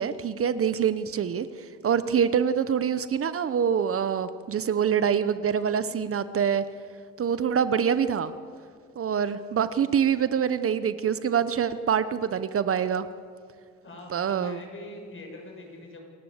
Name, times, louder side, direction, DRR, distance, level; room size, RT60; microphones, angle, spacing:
voice 1, 0.0-1.5 1.8-6.6 7.2-8.3 9.0-13.1 14.1-14.6, right 7 dB, 50° right, 13 dB, 0.9 m, -25 dB
voice 2, 13.8-16.0, left 2 dB, 40° left, 1 dB, 7.0 m, -43 dB
28.0 x 14.5 x 8.0 m, 2.1 s
cardioid pair, 90°, 30 cm